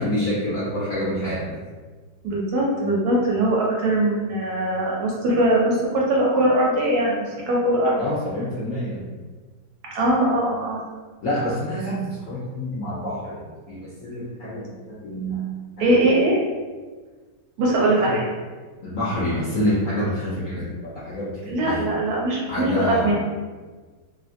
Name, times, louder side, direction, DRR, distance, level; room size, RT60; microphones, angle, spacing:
voice 1, 0.0-1.6 8.0-9.1 11.2-15.5 15.8-16.1 17.7-18.2 18.8-21.9 22.5-23.2, equal, 70° left, -7 dB, 0.8 m, -27 dB
voice 2, 2.2-8.0 9.9-10.8 15.8-16.4 17.6-18.3 21.5-23.2, right 1 dB, 70° right, -3 dB, 1.0 m, -21 dB
2.8 x 2.5 x 2.5 m, 1.4 s
omnidirectional pair, 1.9 m